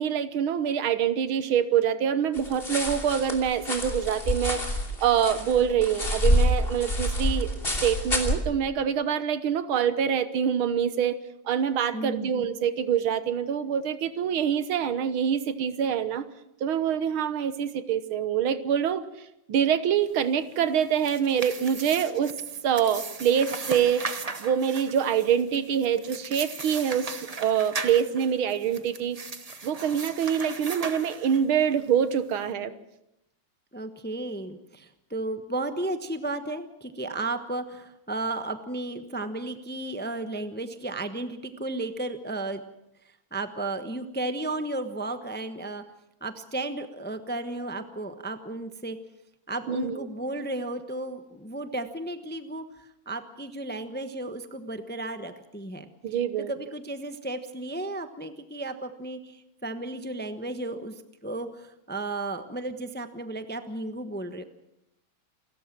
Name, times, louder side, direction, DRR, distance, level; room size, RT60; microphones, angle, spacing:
voice 1, 0.0-4.6 5.0-7.5 7.8-11.2 11.5-16.3 16.6-19.0 19.5-22.4 22.6-24.1 24.4-29.2 29.6-32.7 49.7-50.1 56.0-56.5, right 8 dB, 85° right, 13 dB, 2.0 m, -25 dB
sound 1, 2.3-8.4, equal, 25° left, 3.2 m, -27 dB
voice 2, 11.9-12.3 33.7-42.6 43.3-45.8 46.2-49.0 49.5-52.6 53.1-55.9 56.5-60.9 61.2-64.4, right 2 dB, 10° left, 9 dB, 0.7 m, -34 dB
sound 2, 20.7-31.6, right 4 dB, 30° right, 0.7 m, -38 dB
28.5 x 14.0 x 7.5 m, 0.83 s
omnidirectional pair, 2.2 m